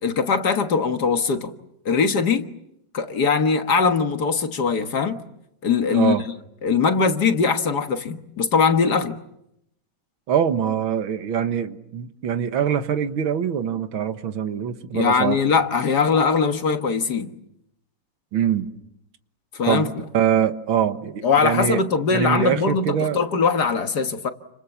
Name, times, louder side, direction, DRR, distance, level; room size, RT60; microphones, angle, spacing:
voice 1, 0.0-1.5 1.9-2.5 2.9-5.2 5.6-6.2 6.6-9.2 14.9-17.3 19.5-19.9 21.2-24.3, left 5 dB, 55° left, 2.0 m, -21 dB
voice 2, 5.9-6.2 10.3-15.4 18.3-18.7 19.7-19.9 20.1-21.8 22.1-23.2, right 9 dB, 90° right, 2.2 m, -23 dB
29.5 x 27.0 x 7.3 m
omnidirectional pair, 2.2 m